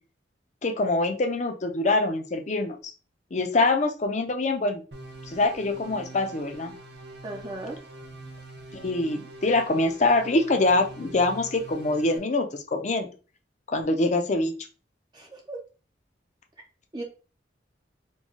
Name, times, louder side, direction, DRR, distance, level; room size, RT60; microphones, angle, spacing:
voice 1, 0.6-2.8 3.3-4.8 5.3-6.7 8.7-13.1 13.7-14.5, left 2 dB, 40° left, 6 dB, 0.6 m, -24 dB
sound 1, 4.9-12.2, right 1 dB, 65° right, 0.8 m, -44 dB
voice 2, 7.2-7.8 15.1-15.6 16.9-17.0, right 2 dB, 25° right, 0 dB, 0.5 m, -36 dB
4.5 x 2.2 x 2.8 m, 0.35 s
head